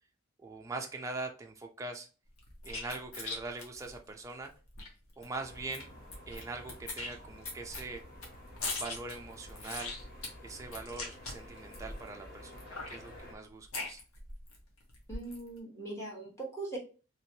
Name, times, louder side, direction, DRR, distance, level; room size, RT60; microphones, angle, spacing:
voice 1, 0.4-2.1 2.6-4.5 5.2-5.9 6.3-8.0 8.8-10.0 10.4-14.0, right 3 dB, 15° right, 3 dB, 0.3 m, -42 dB
sound 1, 2.4-4.9 5.2-5.3 5.5-6.4 6.7-12.1 12.5-14.6 14.9-15.5, left 3 dB, 75° left, 1.1 m, -40 dB
sound 2, 5.4-13.3, left 1 dB, 45° left, 0.8 m, -51 dB
voice 2, 15.1-16.8, right 2 dB, 15° left, -4 dB, 1.0 m, -40 dB
2.9 x 2.9 x 2.7 m, 0.34 s
head